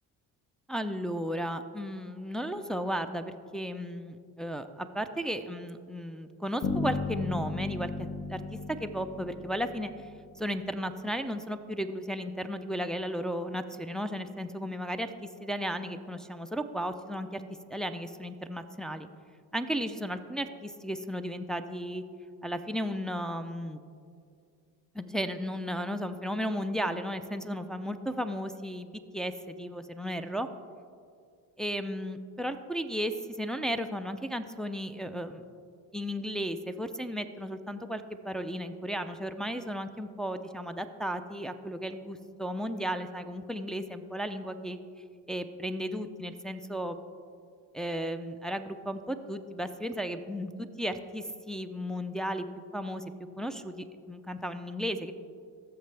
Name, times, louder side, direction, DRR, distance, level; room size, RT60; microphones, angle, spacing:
voice 1, 0.7-8.4 8.7-10.1 10.4-17.4 17.7-19.1 19.5-22.0 22.4-23.8 24.9-30.5 31.6-35.4 35.9-44.8 45.3-47.0 47.7-52.5 52.7-53.0 53.4-55.1, equal, ahead, 6 dB, 0.5 m, -34 dB
Bass guitar, 6.6-10.4, left 3 dB, 40° left, 1.0 m, -35 dB
16.0 x 6.7 x 3.4 m, 2.3 s
supercardioid pair, 70°, 40 cm